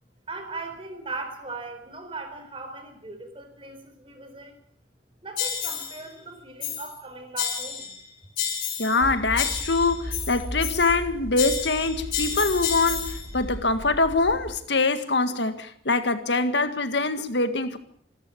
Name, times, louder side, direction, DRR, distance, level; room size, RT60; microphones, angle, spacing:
voice 1, 0.3-4.5 5.2-7.9, right 3 dB, 30° right, 4.3 m, -38 dB
sound 1, 5.4-6.0 6.6-7.0 7.4-8.0 8.4-9.0 9.4-11.0 11.4-13.3, left 8 dB, 50° left, 4.2 m, -30 dB
voice 2, 8.8-17.8, left 3 dB, 70° left, 1.8 m, -24 dB
sound 2, 9.0-14.6, equal, 50° right, 4.3 m, -36 dB
27.0 x 13.0 x 8.7 m
head